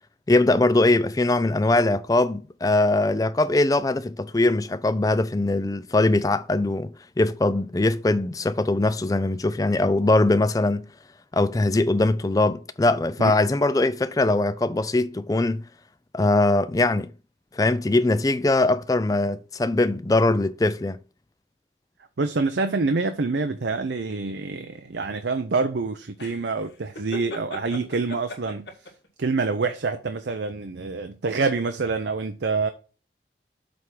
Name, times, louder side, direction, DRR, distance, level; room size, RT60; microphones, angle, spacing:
voice 1, 0.3-6.9 7.2-10.9 11.3-15.6 16.1-17.1 17.5-21.0, left 2 dB, 20° left, 0.4 m, -21 dB
voice 2, 22.2-28.7 29.2-32.7, right 4 dB, 80° right, 0.6 m, -26 dB
sound 1, 26.2-29.1, left 1 dB, 85° left, 2.6 m, -37 dB
7.7 x 3.6 x 6.1 m
head